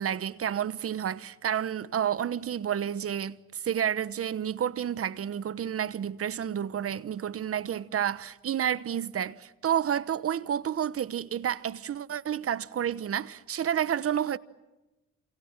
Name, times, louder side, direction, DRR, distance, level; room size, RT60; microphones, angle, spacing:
voice 1, 0.0-14.4, right 9 dB, 50° right, 1.1 m, -30 dB
28.0 x 27.0 x 7.4 m
cardioid pair, 90°, 30 cm